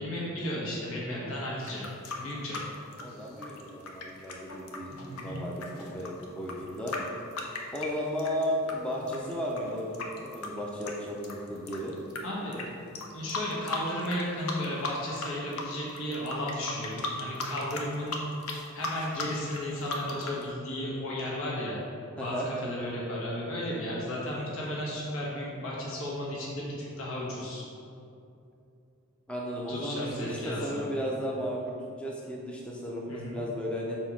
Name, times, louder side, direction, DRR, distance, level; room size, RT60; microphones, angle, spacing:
voice 1, 0.0-1.9 2.2-2.6 3.1-3.3 4.9-5.4 12.2-12.7 13.1-18.2 18.7-21.8 22.2-27.6 29.7-30.8 33.1-33.4, left 1 dB, 65° left, -5 dB, 1.2 m, -34 dB
sound 1, 1.6-8.7 9.1-12.2 12.5-12.7 13.0-14.2 14.5-15.3 15.5-20.4, left 3 dB, 80° left, 0.8 m, -37 dB
voice 2, 3.0-6.9 7.7-11.9 22.2-22.5 29.3-34.0, equal, 5° left, -3 dB, 0.6 m, -34 dB
4.5 x 4.5 x 5.9 m, 2.6 s
head